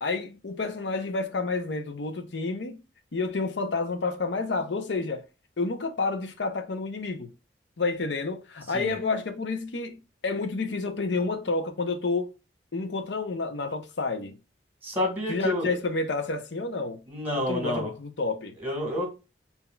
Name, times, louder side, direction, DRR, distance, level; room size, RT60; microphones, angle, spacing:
voice 1, 0.0-2.8 3.1-5.2 5.6-7.3 7.8-10.0 10.2-12.3 12.7-14.4 15.3-17.0 17.4-18.5, left 3 dB, 85° left, 0.7 m, -29 dB
voice 2, 14.8-15.7 17.1-17.9 18.6-19.1, left 1 dB, 10° right, 1.6 m, -29 dB
5.6 x 2.8 x 2.2 m
head